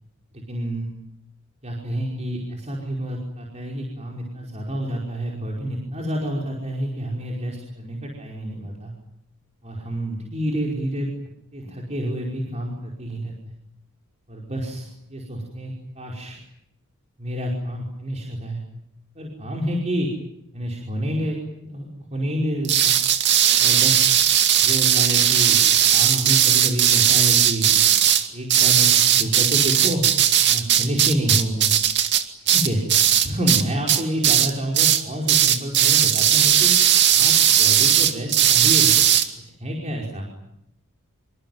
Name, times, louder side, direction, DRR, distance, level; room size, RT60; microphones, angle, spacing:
voice 1, 0.3-0.9 1.6-8.9 9.6-11.1 11.5-13.3 14.3-16.4 17.2-18.6 19.1-20.1 20.5-22.9 23.6-24.2 24.6-25.6 25.9-27.7 28.3-30.0 30.5-31.7 32.5-32.8 33.2-36.7 37.1-38.9 39.6-40.3, equal, 30° right, -1 dB, 5.1 m, -28 dB
sound 1, 22.6-33.6 33.9-34.5 34.7-35.0 35.3-39.2, right 10 dB, 55° right, 2.3 m, -17 dB
26.0 x 24.5 x 9.4 m, 0.80 s
head